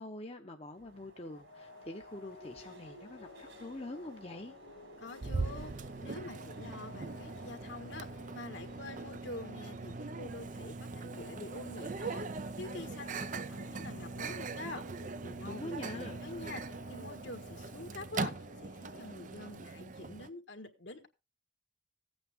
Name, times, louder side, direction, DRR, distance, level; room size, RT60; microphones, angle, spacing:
voice 1, 0.0-4.5 15.4-16.1, left 1 dB, 30° left, 3 dB, 0.9 m, -44 dB
sound 1, 0.7-19.8, right 1 dB, 65° right, 2.3 m, -58 dB
sound 2, 1.3-19.6, left 3 dB, 90° left, 1.3 m, -56 dB
voice 2, 5.0-5.7 6.0-14.8 15.2-21.1, left 2 dB, 65° left, 7 dB, 1.6 m, -46 dB
Microwave oven, 5.2-20.3, right 3 dB, 40° right, 0.5 m, -41 dB
15.5 x 8.9 x 3.6 m, 0.28 s
head